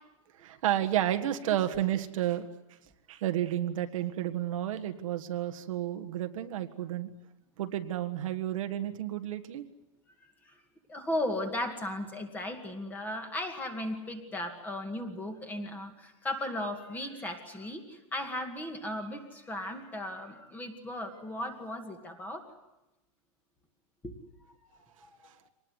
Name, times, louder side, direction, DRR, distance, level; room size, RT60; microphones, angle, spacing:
voice 1, 0.4-2.4 3.1-7.1 7.6-9.6, right 12 dB, 65° right, 6 dB, 1.7 m, -31 dB
voice 2, 10.9-22.5 24.0-24.1 25.1-25.3, left 1 dB, 10° left, 5 dB, 2.3 m, -36 dB
25.0 x 19.5 x 9.6 m, 0.96 s
supercardioid pair, 165°, 18 cm